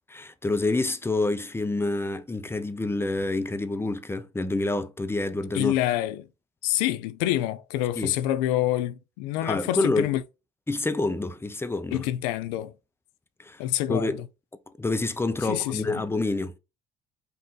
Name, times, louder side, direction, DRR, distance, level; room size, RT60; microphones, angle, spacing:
voice 1, 0.1-5.7 8.0-8.1 9.4-10.1 10.7-12.0 13.4-13.6 13.9-14.2 14.8-16.5, left 2 dB, 10° left, 0.7 m, -27 dB
voice 2, 5.5-6.3 6.6-10.2 11.9-12.7 13.6-14.2 15.5-16.0, left 14 dB, 80° left, 0.5 m, -27 dB
5.4 x 2.5 x 3.9 m
hypercardioid pair, 60°, 21 cm